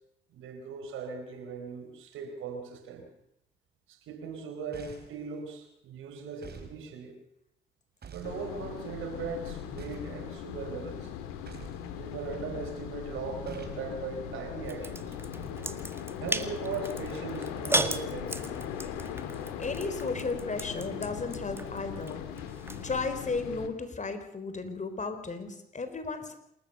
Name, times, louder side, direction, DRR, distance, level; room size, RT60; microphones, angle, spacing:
voice 1, 0.3-3.1 3.9-7.2 8.1-11.1 12.0-15.2 16.2-18.6, right 5 dB, 70° right, 6 dB, 4.4 m, -39 dB
sound 1, 4.7-5.2 6.4-6.8 8.0-8.4 9.8-10.2 11.5-11.8 13.4-13.8, right 6 dB, 50° right, 5.0 m, -47 dB
sound 2, 8.2-23.7, left 8 dB, 80° left, 2.2 m, -39 dB
sound 3, 14.6-23.0, right 1 dB, 10° right, 1.9 m, -37 dB
voice 2, 19.6-22.2 22.8-26.4, left 4 dB, 35° left, 9 dB, 4.2 m, -34 dB
27.5 x 13.5 x 6.9 m, 0.78 s
hypercardioid pair, 50°, 21 cm